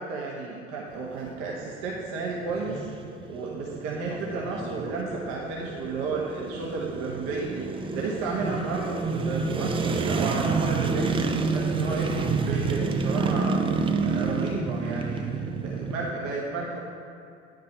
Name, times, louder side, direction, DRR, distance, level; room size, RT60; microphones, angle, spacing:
voice 1, 0.0-2.8 3.3-11.1 11.5-13.6 14.0-15.3 15.5-16.8, right 3 dB, 50° right, -3 dB, 1.3 m, -32 dB
sound 1, 0.9-16.1, right 4 dB, 15° right, 0.4 m, -29 dB
9.4 x 5.2 x 4.4 m, 2.5 s
figure-of-eight pair, 70°, 36 cm